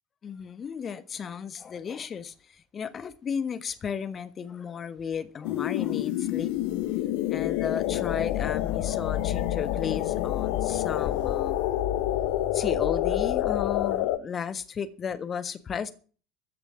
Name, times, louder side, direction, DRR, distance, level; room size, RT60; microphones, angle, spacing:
voice 1, 0.2-6.5 7.3-11.6 12.5-15.9, left 7 dB, 30° left, 1.4 m, -34 dB
sound 1, 5.4-14.2, left 13 dB, 60° left, 0.9 m, -27 dB
14.5 x 6.8 x 8.4 m
figure-of-eight pair, 65°, 0 cm